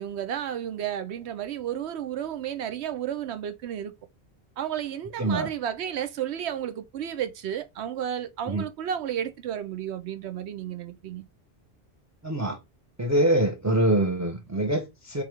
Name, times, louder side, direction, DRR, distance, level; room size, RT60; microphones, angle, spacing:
voice 1, 0.0-3.9 4.6-11.2, right 10 dB, 90° right, 0.9 m, -32 dB
voice 2, 5.2-5.5 8.5-8.6 12.2-12.6 13.0-15.2, right 1 dB, 20° right, 0.4 m, -24 dB
3.4 x 3.1 x 3.2 m
omnidirectional pair, 1.1 m